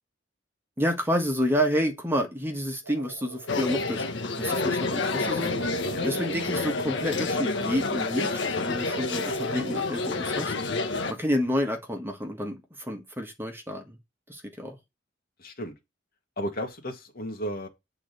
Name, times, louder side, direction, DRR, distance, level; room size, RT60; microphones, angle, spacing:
voice 1, 0.8-5.5 6.0-10.5 11.1-14.0 14.3-14.8, equal, 10° right, 1.4 m, -29 dB
sound 1, 2.8-4.2 5.5-7.7 8.9-11.1, right 3 dB, 85° right, 1.1 m, -42 dB
sound 2, 3.5-11.1, left 3 dB, 65° left, 1.3 m, -29 dB
voice 2, 15.4-15.7 16.4-17.7, equal, 50° left, 1.9 m, -34 dB
8.5 x 4.0 x 6.9 m
head